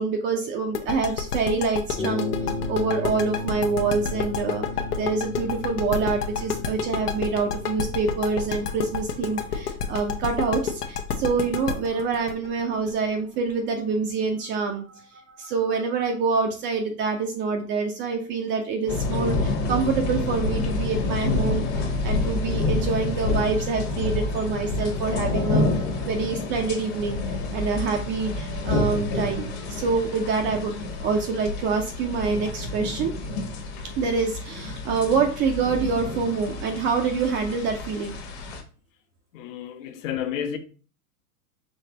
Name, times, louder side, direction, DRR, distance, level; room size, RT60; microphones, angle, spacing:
voice 1, 0.0-27.2 27.5-33.4 33.8-38.3, right 4 dB, 25° right, 0.5 m, -26 dB
sound 1, 0.7-13.5, left 7 dB, 85° left, 0.9 m, -29 dB
sound 2, 1.9-9.7, left 2 dB, 15° left, 0.7 m, -35 dB
sound 3, 18.9-38.6, left 3 dB, 45° left, 1.2 m, -28 dB
voice 2, 39.3-40.6, left 9 dB, 60° left, 0.9 m, -31 dB
5.3 x 3.2 x 2.8 m
hypercardioid pair, 115°, 45 cm